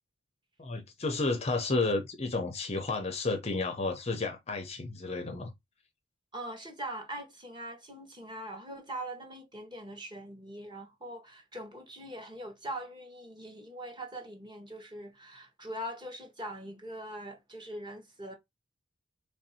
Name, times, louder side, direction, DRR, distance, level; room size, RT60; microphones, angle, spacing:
voice 1, 0.6-5.5, left 3 dB, 30° left, 0.5 m, -31 dB
voice 2, 6.3-18.3, right 1 dB, 20° right, 0.9 m, -42 dB
3.3 x 2.6 x 4.1 m
head